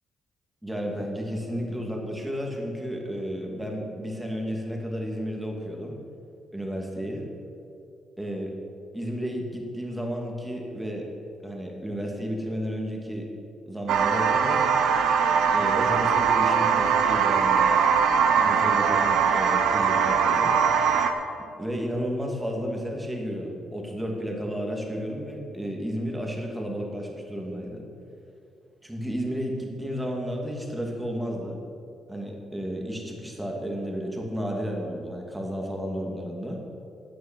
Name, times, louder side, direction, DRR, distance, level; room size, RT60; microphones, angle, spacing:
voice 1, 0.6-6.0 6.5-7.2 8.2-8.5 8.9-11.1 11.4-13.3 13.7-14.6 15.5-17.7 18.4-20.6 21.6-27.8 28.8-31.6 32.1-36.6, equal, 5° right, 0 dB, 2.5 m, -32 dB
sound 1, 13.9-21.1, right 6 dB, 80° right, 1.0 m, -21 dB
12.0 x 8.5 x 7.5 m, 2.5 s
cardioid pair, 90°, 0 cm